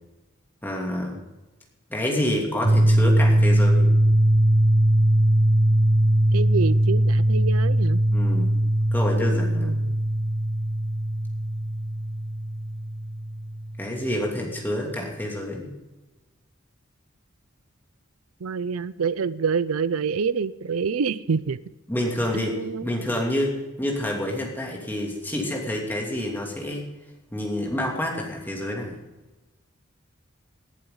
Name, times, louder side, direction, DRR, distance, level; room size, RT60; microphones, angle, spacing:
voice 1, 0.6-1.2 1.9-3.9 8.1-8.5 8.9-9.8 13.8-15.7 21.9-26.9 27.3-29.0, left 1 dB, 10° left, -1 dB, 2.7 m, -28 dB
sound 1, 2.6-14.5, right 1 dB, 30° right, 0.5 m, -21 dB
voice 2, 6.3-8.0 9.5-9.9 18.4-21.6 22.3-22.9, right 5 dB, 85° right, 17 dB, 0.5 m, -27 dB
19.5 x 11.0 x 3.9 m, 1.1 s
head